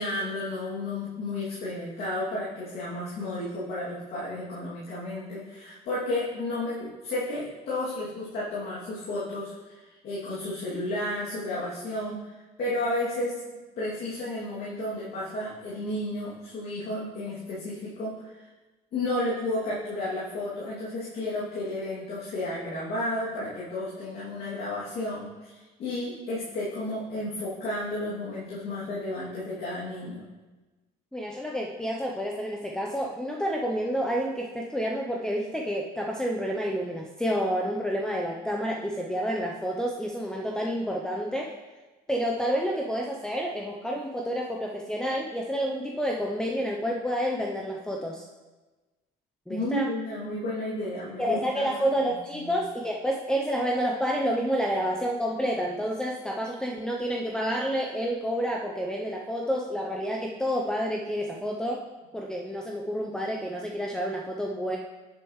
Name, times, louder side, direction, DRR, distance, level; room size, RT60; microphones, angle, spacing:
voice 1, 0.0-13.4 13.8-18.5 18.9-30.3 49.5-51.7 52.1-52.6, left 1 dB, 65° left, -9 dB, 2.7 m, -32 dB
voice 2, 31.1-41.5 42.1-48.2 49.5-50.0 51.2-61.8 62.1-64.8, equal, 5° left, -1 dB, 0.7 m, -29 dB
9.9 x 7.8 x 3.2 m, 1.2 s
cardioid pair, 110°, 17 cm